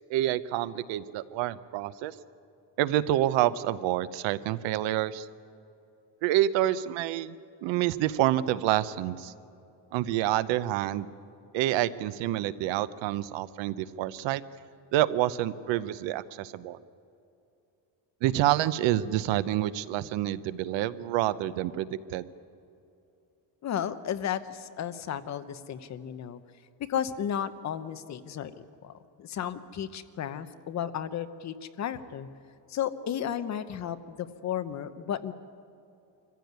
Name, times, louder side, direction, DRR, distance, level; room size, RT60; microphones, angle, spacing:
voice 1, 0.1-2.1 2.8-5.3 6.2-7.4 7.6-9.3 9.9-11.1 11.5-14.4 14.9-16.8 18.2-22.2, right 13 dB, 75° right, 16 dB, 0.9 m, -27 dB
voice 2, 23.6-26.4 26.9-28.9 29.2-32.3 32.7-35.3, left 9 dB, 40° left, 11 dB, 0.9 m, -33 dB
24.5 x 15.5 x 9.4 m, 2.7 s
cardioid pair, 155°, 45 cm